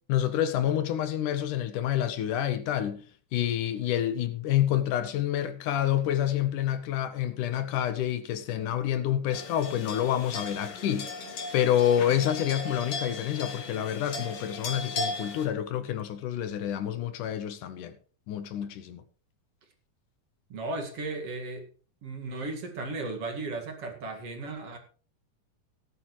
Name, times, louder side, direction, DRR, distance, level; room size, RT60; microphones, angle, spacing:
voice 1, 0.1-3.0 3.3-11.1 11.5-17.9 18.3-19.0, left 11 dB, 75° left, 2.5 m, -28 dB
sound 1, 9.3-15.5, left 3 dB, 50° left, 2.8 m, -37 dB
voice 2, 20.5-21.7 22.0-24.8, right 2 dB, 50° right, 2.7 m, -35 dB
17.5 x 11.0 x 3.1 m
omnidirectional pair, 3.7 m